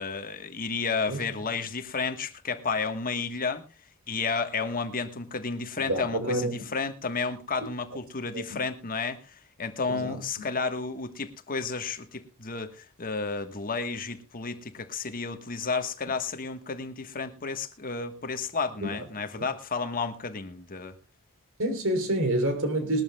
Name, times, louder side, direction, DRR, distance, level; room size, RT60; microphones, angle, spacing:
voice 1, 0.0-3.6 4.1-21.0, left 4 dB, 40° left, 1.4 m, -32 dB
voice 2, 5.9-6.6 8.3-8.6 9.9-10.2 18.8-19.0 19.3-19.4 21.6-23.0, right 1 dB, 65° right, 3.5 m, -28 dB
21.5 x 13.0 x 2.3 m
head